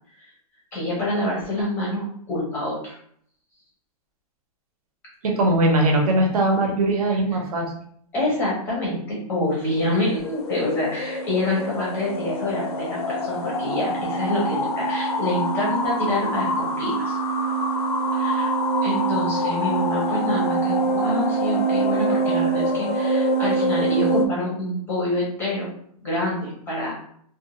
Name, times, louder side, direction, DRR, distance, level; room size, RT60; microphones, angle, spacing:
voice 1, 0.7-3.0 8.1-17.2 18.1-18.5 18.8-25.7 26.0-26.9, left 1 dB, 10° left, -5 dB, 0.5 m, -27 dB
voice 2, 5.2-7.7, right 1 dB, 70° right, 1 dB, 0.8 m, -20 dB
sound 1, 9.6-24.3, right 1 dB, 75° left, 0.5 m, -24 dB
2.4 x 2.3 x 2.8 m, 0.65 s
supercardioid pair, 175°, 20 cm